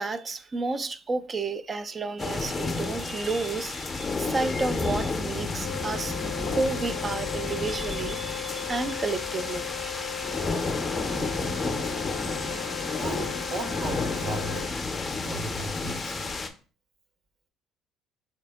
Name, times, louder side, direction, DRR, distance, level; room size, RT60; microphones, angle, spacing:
voice 1, 0.0-10.7, right 3 dB, 30° right, 0.4 m, -32 dB
sound 1, 2.2-16.5, left 3 dB, 25° left, 0.6 m, -31 dB
sound 2, 5.2-11.7, equal, 80° right, 1.1 m, -48 dB
Wind instrument woodwind instrument, 5.6-14.8, left 10 dB, 90° left, 0.3 m, -38 dB
voice 2, 13.0-14.7 15.2-16.1, right 2 dB, 50° right, 0.9 m, -36 dB
3.3 x 2.8 x 3.4 m
supercardioid pair, 75°, 0 cm